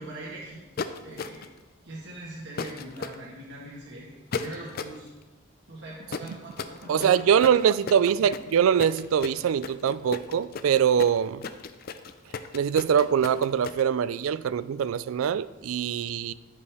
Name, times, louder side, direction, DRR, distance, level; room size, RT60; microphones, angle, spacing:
voice 1, 0.0-1.5 1.8-5.1 5.7-7.3, right 1 dB, 55° right, 1.4 m, -42 dB
sound 1, 0.8-1.6 2.6-3.2 4.3-5.0 6.1-13.8, left 5 dB, 45° left, 0.4 m, -35 dB
voice 2, 6.9-11.4 12.5-16.3, right 8 dB, 75° right, 0.3 m, -23 dB
14.0 x 5.3 x 3.4 m
head